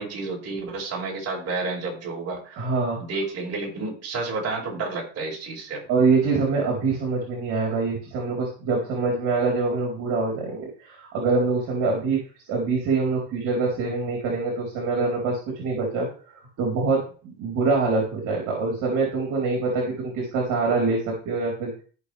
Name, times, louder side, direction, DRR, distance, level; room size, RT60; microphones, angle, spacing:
voice 1, 0.0-2.6 3.0-5.8, right 3 dB, 45° right, -2 dB, 6.2 m, -30 dB
voice 2, 2.6-3.0 5.9-12.2 12.5-21.7, right 4 dB, 65° right, -1 dB, 4.2 m, -25 dB
14.5 x 6.6 x 3.5 m, 0.39 s
supercardioid pair, 95°, 34 cm